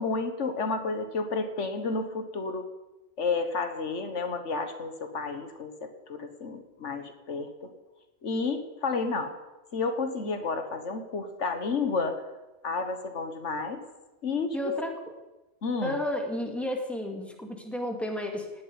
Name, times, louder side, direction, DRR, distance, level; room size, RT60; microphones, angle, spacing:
voice 1, 0.0-2.7 3.2-7.7 8.2-9.3 9.7-12.2 12.6-13.8 14.2-14.7 15.6-16.0, left 4 dB, 85° left, 7 dB, 1.8 m, -31 dB
voice 2, 14.5-15.0 15.8-18.5, left 1 dB, ahead, 2 dB, 2.2 m, -32 dB
18.0 x 7.6 x 9.7 m, 1.1 s
omnidirectional pair, 1.2 m